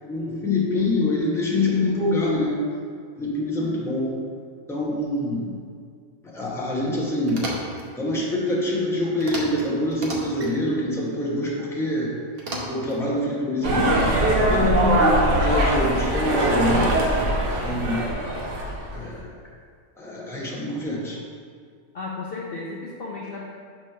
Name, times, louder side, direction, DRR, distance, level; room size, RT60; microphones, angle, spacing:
voice 1, 0.0-2.6 3.2-4.1 4.7-5.6 6.2-7.5 8.0-12.2 12.7-17.0 17.6-18.1 18.9-19.3 20.0-21.2, left 1 dB, ahead, -4 dB, 0.8 m, -25 dB
sound 1, 7.3-7.9 9.2-9.6 9.9-10.5 12.4-13.0, right 1 dB, 50° right, 1.0 m, -33 dB
sound 2, 13.6-19.0, right 1 dB, 65° right, 1.2 m, -21 dB
voice 2, 21.9-23.5, left 3 dB, 55° left, -3 dB, 0.7 m, -34 dB
6.2 x 3.1 x 5.5 m, 2.1 s
omnidirectional pair, 1.4 m